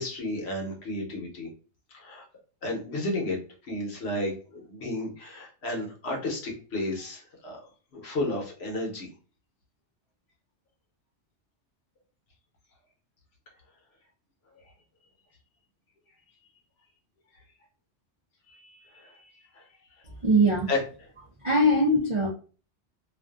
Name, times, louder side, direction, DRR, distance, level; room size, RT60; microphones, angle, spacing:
voice 1, 0.0-1.5 1.9-2.2 2.6-3.4 3.7-7.6 7.9-9.1 18.5-19.6 20.7-20.8, left 2 dB, 65° left, 0 dB, 1.0 m, -32 dB
voice 2, 20.2-20.7 21.4-22.3, right 1 dB, 50° right, -1 dB, 0.3 m, -21 dB
2.5 x 2.4 x 2.3 m, 0.37 s
omnidirectional pair, 1.2 m